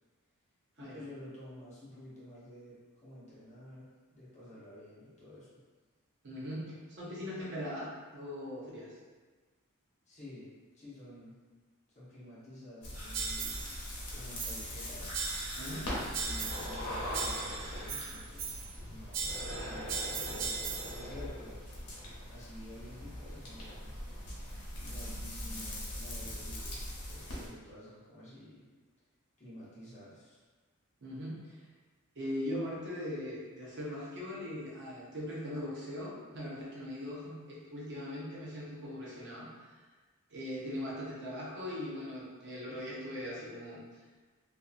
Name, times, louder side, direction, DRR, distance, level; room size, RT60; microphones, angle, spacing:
voice 1, 0.8-5.6 10.1-10.5 10.7-11.4 11.9-13.6 14.1-15.1 15.9-21.6 22.3-23.9 24.8-28.7 29.4-30.4, left 1 dB, 30° left, -9 dB, 0.9 m, -51 dB
voice 2, 6.2-8.9 15.5-15.9 31.0-31.7 32.2-39.5 40.3-43.8, left 1 dB, 50° right, -6 dB, 0.7 m, -40 dB
sound 1, 12.8-27.5, left 1 dB, 80° left, 0.8 m, -41 dB
sound 2, 12.9-18.1, equal, 25° right, 1.5 m, -48 dB
sound 3, 13.1-13.8 14.4-14.8 15.1-15.8 16.1-16.8 17.1-18.8 19.1-21.0, right 5 dB, 80° right, 0.3 m, -38 dB
2.7 x 2.5 x 2.4 m, 1.3 s
head